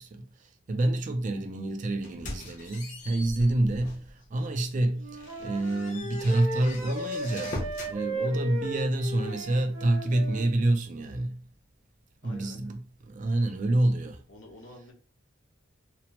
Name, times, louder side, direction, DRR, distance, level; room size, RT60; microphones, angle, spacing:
voice 1, 0.0-11.4 12.2-14.2, right 1 dB, 40° right, 0.3 m, -28 dB
sound 1, 2.0-4.1 4.6-4.7 5.1-8.0, left 1 dB, 40° left, 0.7 m, -41 dB
Wind instrument woodwind instrument, 5.0-10.5, right 1 dB, 85° right, 0.8 m, -36 dB
voice 2, 12.2-12.7 14.3-14.9, left 1 dB, 70° left, 0.9 m, -49 dB
2.8 x 2.0 x 2.8 m
head